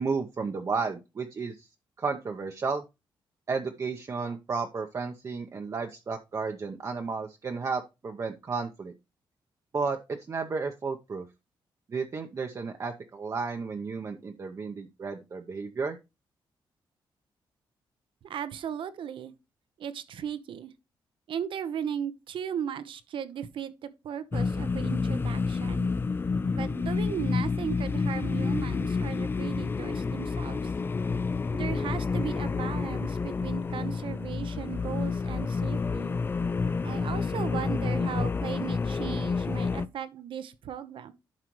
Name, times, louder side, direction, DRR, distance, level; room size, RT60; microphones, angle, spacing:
voice 1, 0.0-1.7 2.0-2.8 3.5-8.9 9.7-11.3 11.9-16.0, right 4 dB, 35° right, 0.8 m, -33 dB
voice 2, 18.2-19.3 19.8-20.7 21.3-25.9 26.5-30.7 31.5-36.2 36.8-41.1, right 9 dB, 75° right, 0.9 m, -36 dB
sound 1, 24.3-39.9, left 4 dB, 25° left, 0.4 m, -29 dB
11.5 x 4.9 x 3.0 m
cardioid pair, 130°, 9 cm